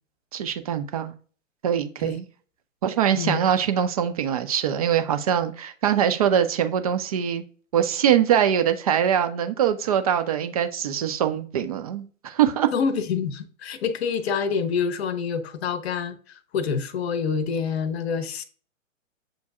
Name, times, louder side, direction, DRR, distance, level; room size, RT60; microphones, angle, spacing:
voice 1, 0.3-1.1 1.6-2.2 2.8-7.4 7.7-12.7, right 9 dB, 30° right, 0.4 m, -23 dB
voice 2, 12.7-18.4, left 6 dB, 55° left, 0.7 m, -27 dB
7.4 x 2.6 x 2.3 m
figure-of-eight pair, 120°, 39 cm